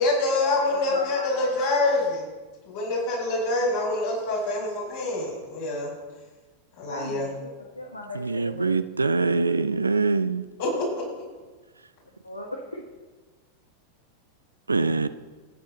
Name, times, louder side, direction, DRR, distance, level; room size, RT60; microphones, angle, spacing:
voice 1, 0.0-2.2 2.7-5.9 6.8-7.3 10.6-10.8, left 2 dB, 60° left, -5 dB, 4.5 m, -25 dB
voice 2, 0.7-1.5 6.9-8.7 9.1-9.9 12.2-12.8, left 1 dB, 85° left, 0 dB, 1.3 m, -38 dB
voice 3, 8.1-10.4 14.7-15.1, right 3 dB, 80° right, 13 dB, 0.5 m, -24 dB
24.0 x 8.8 x 4.0 m, 1.3 s
figure-of-eight pair, 90°, 0 cm